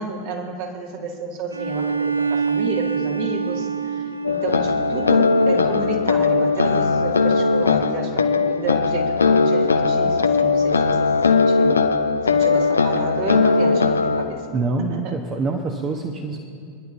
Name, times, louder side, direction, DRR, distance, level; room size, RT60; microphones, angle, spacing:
voice 1, 0.0-11.9 12.2-15.2, right 3 dB, 50° right, 0 dB, 2.3 m, -31 dB
Bowed string instrument, 1.5-6.2, right 5 dB, 80° right, 0.5 m, -26 dB
sound 1, 4.2-14.3, left 4 dB, 75° left, 0.7 m, -19 dB
voice 2, 14.5-16.4, right 3 dB, 30° right, 3 dB, 1.1 m, -25 dB
26.0 x 11.0 x 2.7 m, 2.4 s
figure-of-eight pair, 90°, 0 cm